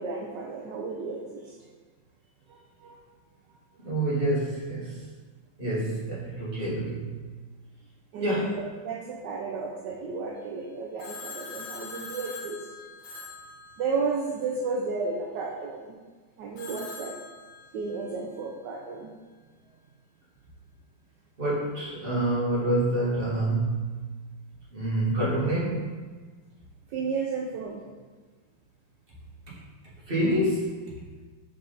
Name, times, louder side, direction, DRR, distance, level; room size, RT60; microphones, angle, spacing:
voice 1, 0.0-1.6 2.5-3.0 8.1-12.7 13.8-16.0 16.4-17.2 17.7-19.1 26.9-27.8, right 4 dB, 70° right, -1 dB, 1.1 m, -33 dB
voice 2, 3.8-5.0 5.6-7.1 8.1-8.5 21.4-24.0 24.7-25.9 30.1-30.9, right 1 dB, 30° right, -7 dB, 1.6 m, -27 dB
Telephone, 11.0-14.3 16.6-18.1, left 3 dB, 75° left, 2.3 m, -42 dB
5.7 x 5.0 x 3.9 m, 1.4 s
omnidirectional pair, 2.3 m